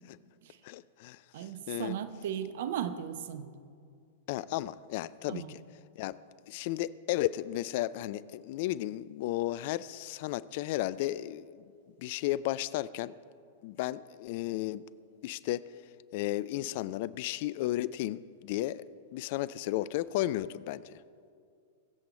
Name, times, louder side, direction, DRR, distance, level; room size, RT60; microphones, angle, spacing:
voice 1, 0.6-2.0 4.3-5.6 6.0-6.2 6.5-11.6 12.0-13.1 13.6-14.8 15.2-15.7 16.1-18.8 19.1-21.0, left 15 dB, 50° left, 18 dB, 0.4 m, -34 dB
voice 2, 1.3-3.5 5.3-5.5, right 9 dB, 60° right, 11 dB, 0.8 m, -36 dB
22.5 x 7.8 x 4.3 m, 2.3 s
figure-of-eight pair, 100°, 0 cm